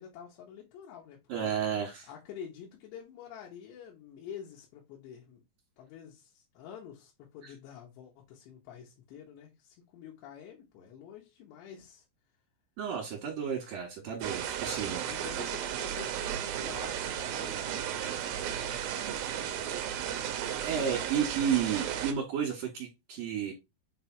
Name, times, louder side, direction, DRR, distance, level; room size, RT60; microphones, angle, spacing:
voice 1, 0.0-1.5 2.1-5.4 5.8-12.0 15.0-20.0, left 8 dB, 80° left, 3.4 m, -48 dB
voice 2, 1.3-2.1 7.4-7.5 12.8-15.2 20.6-23.5, right 8 dB, 60° right, 2.9 m, -32 dB
sound 1, 14.2-22.1, right 10 dB, 75° right, 2.4 m, -34 dB
7.6 x 3.3 x 4.5 m
omnidirectional pair, 5.0 m